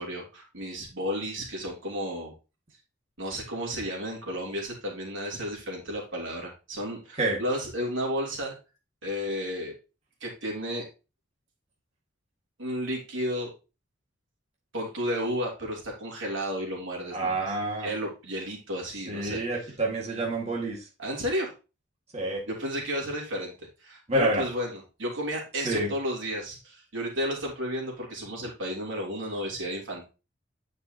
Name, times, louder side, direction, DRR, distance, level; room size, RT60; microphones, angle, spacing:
voice 1, 0.0-2.3 3.2-8.5 9.0-9.7 10.2-10.8 12.6-13.5 14.7-17.5 17.8-19.4 21.0-21.5 22.5-23.5 23.8-30.1, equal, 80° right, -1 dB, 3.2 m, -32 dB
voice 2, 17.1-17.9 19.1-20.9 22.1-22.4 24.1-24.4 25.6-25.9, right 2 dB, 35° right, -3 dB, 1.9 m, -28 dB
9.7 x 5.3 x 2.9 m, 0.31 s
head